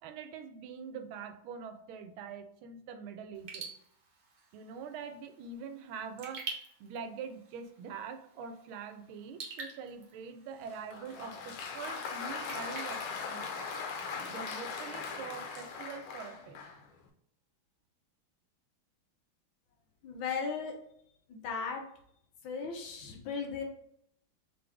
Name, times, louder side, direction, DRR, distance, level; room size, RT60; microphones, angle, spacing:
voice 1, 0.0-3.7 4.5-6.4 6.8-13.7 14.3-16.7, right 6 dB, 80° right, 8 dB, 1.4 m, -44 dB
Raindrop / Drip, 3.3-14.1, right 4 dB, 50° right, 1.0 m, -49 dB
Applause, 10.7-16.9, left 5 dB, 90° left, 1.6 m, -40 dB
voice 2, 20.0-20.7 21.3-21.8 22.4-23.6, left 5 dB, 70° left, 2 dB, 1.5 m, -36 dB
3.9 x 3.6 x 3.3 m, 0.70 s
omnidirectional pair, 2.3 m